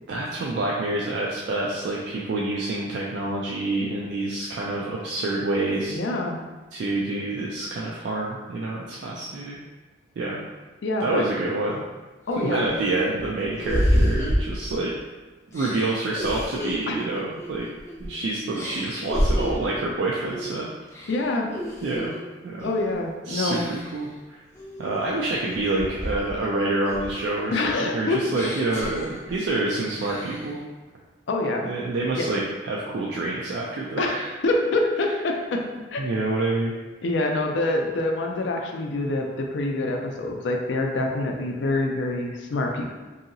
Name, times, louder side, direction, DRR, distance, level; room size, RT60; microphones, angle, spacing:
voice 1, 0.1-6.0 6.7-9.6 10.2-10.4 11.0-11.8 12.4-14.9 15.5-17.7 18.0-20.7 21.8-22.1 22.4-22.7 23.3-24.4 24.8-30.6 31.6-34.3 35.0-35.1 36.0-36.7, right 2 dB, 65° right, -4 dB, 0.3 m, -27 dB
voice 2, 5.9-6.4 10.8-11.3 12.3-12.7 16.9-17.0 21.1-21.5 22.6-23.6 27.5-28.2 31.3-31.7 32.1-32.3 34.0-34.1 34.4-35.7 35.9-36.0 37.0-42.9, left 2 dB, 75° left, 2 dB, 0.4 m, -25 dB
sound 1, 11.7-11.8 12.3-15.0 15.5-18.2 18.5-19.8 20.2-20.5 20.9-22.2 22.6-22.9 23.5-24.0 24.6-26.5 26.8-29.5 29.9-30.5, equal, 15° left, 0.4 m, -29 dB
2.8 x 2.7 x 2.6 m, 1.2 s
head